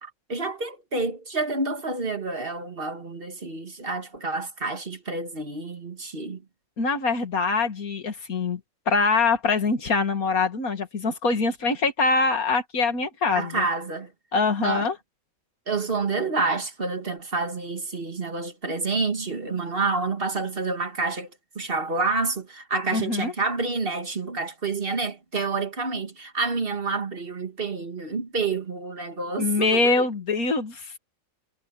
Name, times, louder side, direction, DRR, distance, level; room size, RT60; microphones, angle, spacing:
voice 1, 0.0-6.4 13.3-14.1 14.6-14.9 15.7-21.3 21.6-30.1, right 3 dB, 40° right, 1.9 m, -28 dB
voice 2, 6.8-8.6 8.9-13.6 14.3-15.0 22.9-23.3 29.4-31.0, left 4 dB, 85° left, 2.5 m, -24 dB
omnidirectional pair, 1.5 m